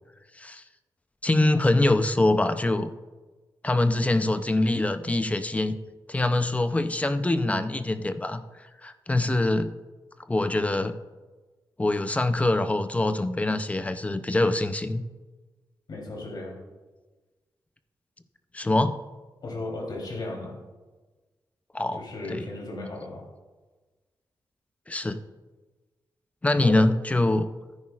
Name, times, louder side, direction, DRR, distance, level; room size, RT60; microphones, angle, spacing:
voice 1, 1.2-2.9 3.6-5.8 6.1-8.4 8.8-9.7 10.3-10.9 11.8-15.0 18.5-19.0 21.7-22.0 22.3-22.5 24.9-25.2 26.4-27.4, left 2 dB, 15° left, 10 dB, 0.5 m, -24 dB
voice 2, 15.9-16.6 19.4-20.6 22.0-23.3 26.6-26.8, left 2 dB, 60° left, -1 dB, 3.3 m, -35 dB
15.0 x 9.6 x 2.4 m, 1.3 s
wide cardioid pair, 130°, 8 cm